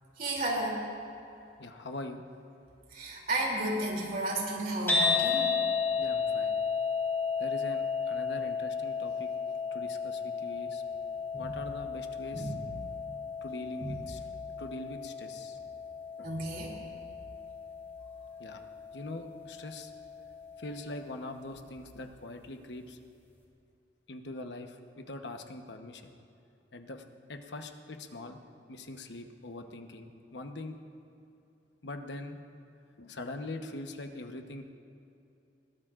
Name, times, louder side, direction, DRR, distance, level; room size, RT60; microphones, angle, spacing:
voice 1, 0.2-0.8 2.9-5.5 11.3-11.6 12.3-12.7 13.8-14.0 16.2-16.7, right 1 dB, 55° right, -2 dB, 2.9 m, -33 dB
voice 2, 1.6-2.2 6.0-6.6 7.4-9.3 9.7-10.8 11.3-12.5 13.4-14.2 14.6-15.6 16.2-16.3 18.4-18.6 18.9-19.9 20.6-23.0 24.1-26.1 26.7-27.0 27.3-28.4 28.7-30.8 31.8-32.4 33.0-34.6, left 2 dB, 75° left, 5 dB, 1.0 m, -42 dB
sound 1, 4.9-21.1, left 5 dB, 15° left, 3.1 m, -34 dB
21.0 x 17.0 x 2.5 m, 2.7 s
head